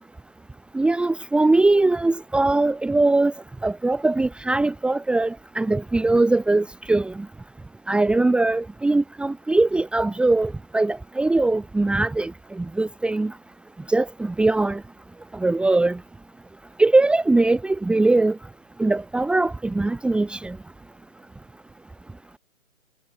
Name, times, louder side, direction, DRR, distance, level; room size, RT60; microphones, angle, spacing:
voice 1, 0.7-3.3 3.6-7.3 7.9-13.3 13.9-14.8 15.3-16.0 16.8-18.4 18.8-20.6, right 2 dB, ahead, 2.7 m, -21 dB
figure-of-eight pair, 140°, 41 cm